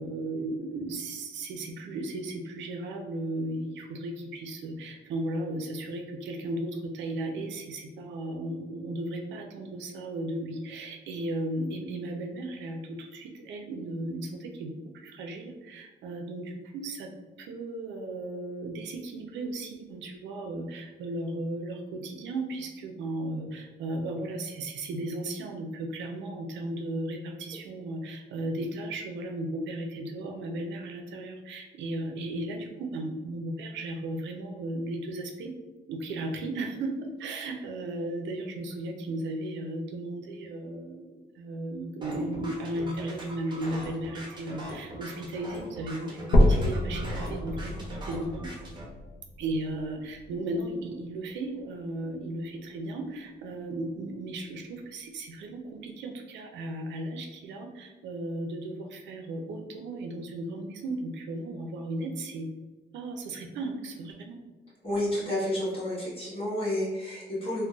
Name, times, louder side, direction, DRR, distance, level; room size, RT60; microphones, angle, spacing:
voice 1, 0.0-17.1 17.4-35.5 35.9-48.5 49.4-62.5 62.9-64.4, right 1 dB, 85° right, 3 dB, 0.5 m, -35 dB
sound 1, 42.0-48.8, right 1 dB, 25° right, 0.7 m, -41 dB
sound 2, 46.3-50.3 50.9-51.0 51.6-51.7 52.0-52.1 52.9-53.0, left 1 dB, 55° left, 0.5 m, -26 dB
voice 2, 64.8-67.7, left 1 dB, 30° left, -7 dB, 1.3 m, -30 dB
3.8 x 2.2 x 2.3 m, 1.2 s
cardioid pair, 120°, 18 cm